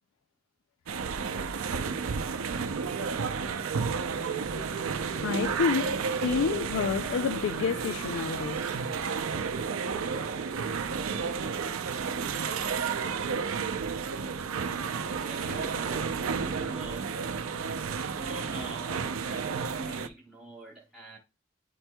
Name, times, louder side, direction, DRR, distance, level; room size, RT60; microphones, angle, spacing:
sound 1, 0.9-20.1, right 5 dB, 85° right, 0.5 m, -32 dB
voice 1, 5.2-8.8, left 6 dB, 75° left, 0.3 m, -29 dB
voice 2, 15.2-17.1 18.1-21.2, right 2 dB, ahead, 1.2 m, -44 dB
9.8 x 4.4 x 2.2 m
head